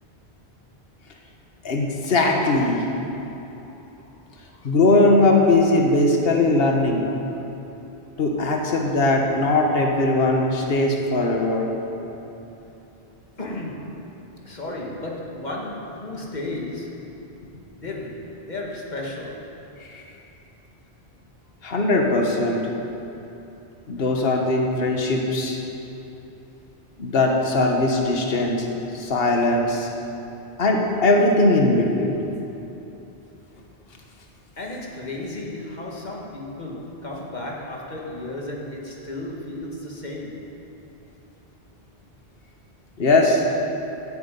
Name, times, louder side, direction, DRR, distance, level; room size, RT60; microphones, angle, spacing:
voice 1, 1.6-2.9 4.6-7.0 8.2-11.7 19.8-20.0 21.6-22.6 23.9-25.6 27.0-28.7 28.9-29.9 30.6-32.2 43.0-43.4, left 2 dB, 70° left, 1 dB, 1.5 m, -20 dB
voice 2, 13.4-14.1 14.4-17.2 17.7-19.5 34.6-40.6, left 2 dB, 45° left, -2 dB, 2.1 m, -34 dB
16.5 x 10.0 x 5.3 m, 3.0 s
omnidirectional pair, 1.0 m